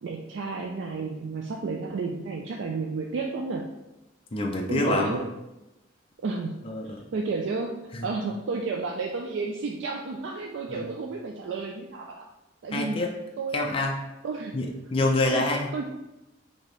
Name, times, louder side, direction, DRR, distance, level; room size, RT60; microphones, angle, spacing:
voice 1, 0.0-3.7 4.7-5.3 6.2-7.8 8.0-12.3 12.6-13.1 13.4-13.7 14.2-14.6 15.3-15.5 15.7-15.8, right 4 dB, 80° right, 1 dB, 0.4 m, -32 dB
voice 2, 4.3-5.2 6.6-7.0 7.9-8.1 10.7-10.9 12.7-13.1 13.5-14.0 14.5-15.8, left 2 dB, 30° left, 0 dB, 0.4 m, -26 dB
4.4 x 2.8 x 3.1 m, 0.97 s
head